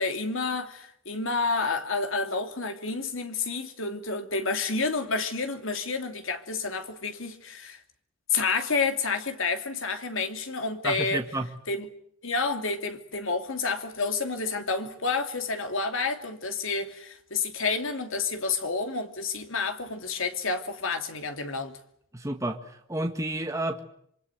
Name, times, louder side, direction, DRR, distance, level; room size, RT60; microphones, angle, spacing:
voice 1, 0.0-7.8 8.3-11.2 11.7-11.9 12.2-21.8, left 4 dB, 75° left, 2.8 m, -29 dB
voice 2, 10.8-11.5 22.1-22.6 22.9-23.8, right 1 dB, 15° right, 1.7 m, -30 dB
26.5 x 23.5 x 7.8 m
head